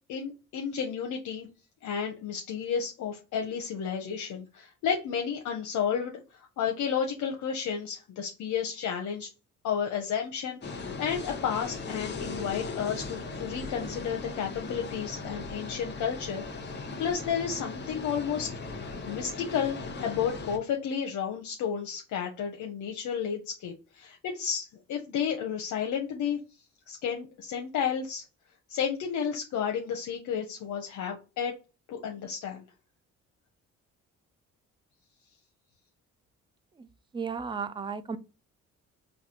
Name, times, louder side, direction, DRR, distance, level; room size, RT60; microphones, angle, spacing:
voice 1, 0.1-1.5 1.8-9.3 9.6-16.7 17.0-26.4 26.9-28.2 28.7-31.5 31.9-32.6, left 7 dB, 75° left, 0.7 m, -32 dB
sound 1, 10.6-20.6, left 3 dB, 35° left, 0.8 m, -38 dB
voice 2, 37.1-38.2, right 6 dB, 15° right, 0.3 m, -34 dB
4.0 x 2.3 x 2.8 m
cardioid pair, 90°, 30 cm